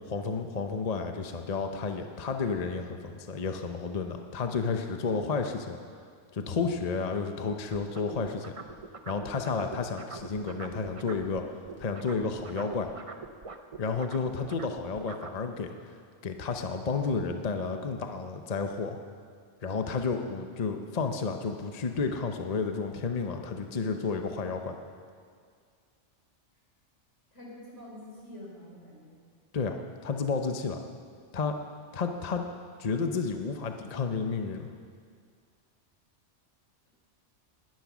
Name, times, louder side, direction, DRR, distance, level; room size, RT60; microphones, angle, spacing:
voice 1, 0.1-5.8 6.3-8.5 9.1-11.5 11.8-12.9 13.8-15.9 16.2-19.0 19.6-24.8 29.5-30.8 31.3-31.6 31.9-32.5 32.8-34.7, left 4 dB, 40° left, 5 dB, 0.9 m, -31 dB
sound 1, 7.7-11.4 11.6-15.4, right 4 dB, 35° right, 0.7 m, -43 dB
voice 2, 27.3-29.2, left 1 dB, 85° left, -4 dB, 4.8 m, -46 dB
20.0 x 11.0 x 6.1 m, 2.1 s
omnidirectional pair, 1.2 m